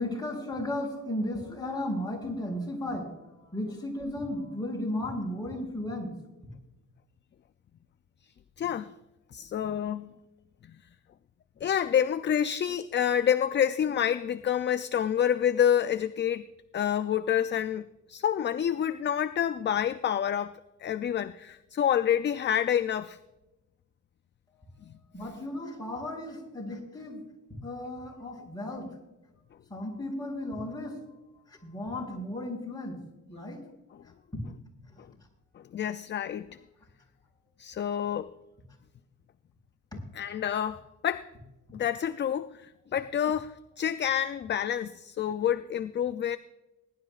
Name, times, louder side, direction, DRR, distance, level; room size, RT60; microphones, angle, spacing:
voice 1, 0.0-6.1 25.1-27.2 27.6-28.9 29.7-31.2 31.5-33.0 33.3-33.6 34.3-34.4 34.9-35.0, left 1 dB, 10° left, 4.7 m, -35 dB
voice 2, 8.6-8.9 9.3-10.1 11.6-16.5 16.7-23.2 24.9-25.0 35.6-36.6 37.6-38.3 40.1-41.3 41.7-46.4, left 9 dB, 35° left, 0.4 m, -28 dB
20.5 x 11.5 x 2.4 m
cardioid pair, 120°, 32 cm